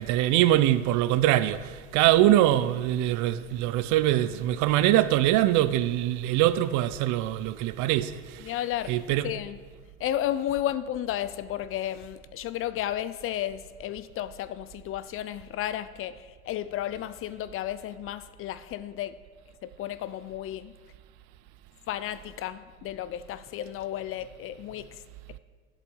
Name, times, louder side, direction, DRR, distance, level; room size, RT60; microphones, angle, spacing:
voice 1, 0.0-9.3, right 13 dB, 55° right, 0.5 m, -23 dB
voice 2, 8.4-9.6 10.0-19.2 19.6-20.7 21.9-25.0, left 12 dB, 40° left, 0.4 m, -33 dB
8.0 x 7.2 x 5.4 m
hypercardioid pair, 85°, 36 cm